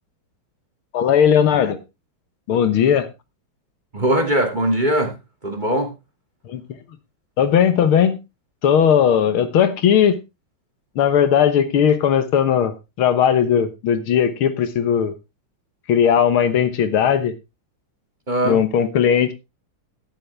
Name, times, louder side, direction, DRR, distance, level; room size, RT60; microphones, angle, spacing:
voice 1, 0.9-1.8 2.5-3.1 6.5-6.6 7.4-8.2 8.6-10.2 11.0-15.1 15.9-17.3 18.4-19.3, left 8 dB, 90° left, 11 dB, 2.1 m, -17 dB
voice 2, 3.9-5.2 5.4-5.9 18.3-18.6, right 1 dB, 20° right, 3 dB, 2.6 m, -20 dB
11.5 x 10.5 x 3.4 m, 0.25 s
omnidirectional pair, 2.3 m